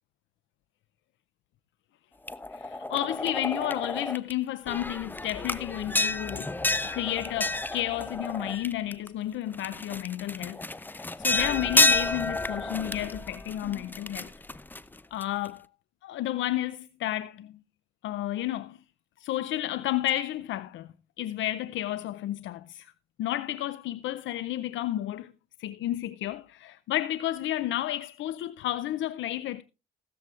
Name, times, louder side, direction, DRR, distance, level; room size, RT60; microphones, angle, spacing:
sound 1, 2.3-4.3 4.7-9.1 9.5-15.5, left 2 dB, 10° left, 0.5 m, -30 dB
voice 1, 2.5-6.6 6.9-14.3 15.1-15.6 16.0-17.5 18.0-18.8 19.2-20.9 21.2-22.9 23.2-25.3 25.6-29.6, left 13 dB, 75° left, 0.5 m, -32 dB
15.5 x 13.0 x 2.4 m
cardioid pair, 90°, 20 cm